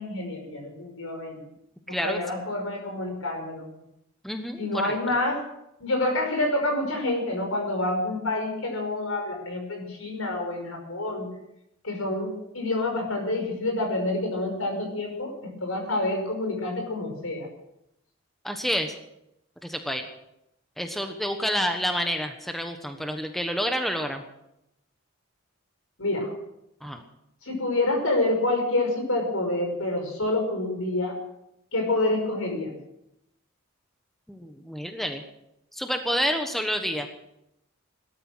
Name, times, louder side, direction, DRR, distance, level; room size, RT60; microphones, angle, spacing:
voice 1, 0.0-1.4 1.9-3.7 4.6-5.4 5.8-11.3 11.8-15.3 15.6-17.5 26.0-26.3 27.4-31.1 31.7-32.8, left 2 dB, 80° left, 3 dB, 5.3 m, -27 dB
voice 2, 1.9-2.2 4.2-4.7 18.4-18.9 19.6-20.0 20.8-24.2 26.8-27.0 34.3-35.2 35.7-37.1, equal, ahead, 5 dB, 1.2 m, -28 dB
18.0 x 12.5 x 6.3 m, 0.83 s
head